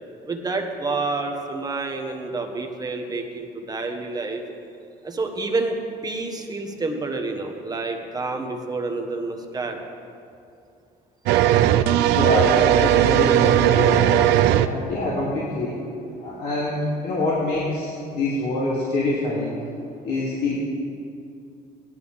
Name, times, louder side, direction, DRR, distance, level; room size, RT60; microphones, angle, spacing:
voice 1, 0.2-4.4 5.0-9.8, right 3 dB, 25° right, 3 dB, 1.4 m, -28 dB
sound 1, 11.3-14.7, right 11 dB, 85° right, 0.5 m, -17 dB
voice 2, 12.1-14.1 14.6-15.8 16.2-19.5 20.0-20.5, left 2 dB, 75° left, -8 dB, 3.0 m, -25 dB
16.5 x 11.5 x 3.6 m, 2.5 s
cardioid pair, 110°, 17 cm